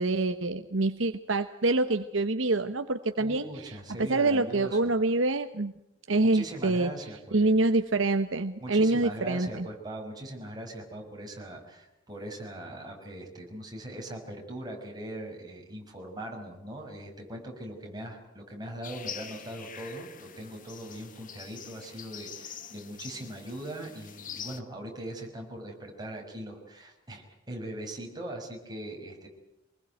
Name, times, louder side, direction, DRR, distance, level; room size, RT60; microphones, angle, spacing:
voice 1, 0.0-5.7 6.1-6.9 7.3-9.7, right 2 dB, 70° right, 8 dB, 1.1 m, -26 dB
voice 2, 3.2-4.9 6.2-7.5 8.6-29.3, right 1 dB, 20° right, 1 dB, 6.0 m, -40 dB
sound 1, 18.8-24.6, left 8 dB, 40° left, 1.6 m, -44 dB
25.5 x 20.5 x 9.3 m, 0.87 s
head